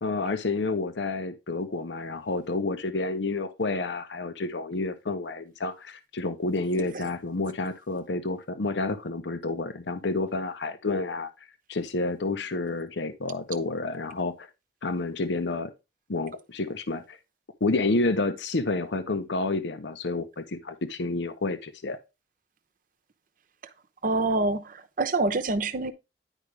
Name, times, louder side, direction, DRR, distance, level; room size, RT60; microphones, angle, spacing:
voice 1, 0.0-11.3 11.7-14.5 14.8-15.7 16.1-17.2 17.6-22.0, left 3 dB, 75° left, 0.8 m, -29 dB
voice 2, 24.0-25.9, right 2 dB, 50° right, 0.8 m, -26 dB
10.0 x 5.0 x 3.3 m
head